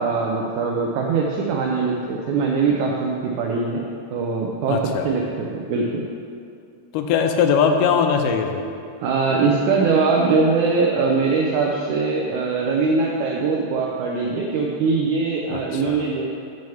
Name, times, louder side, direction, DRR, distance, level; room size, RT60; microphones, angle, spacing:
voice 1, 0.0-3.8 4.1-6.0 9.0-16.2, right 4 dB, 80° right, -1 dB, 1.7 m, -22 dB
voice 2, 4.7-5.1 6.9-8.6 15.5-16.0, left 6 dB, 80° left, 5 dB, 2.0 m, -20 dB
8.7 x 6.4 x 7.0 m, 2.4 s
omnidirectional pair, 4.4 m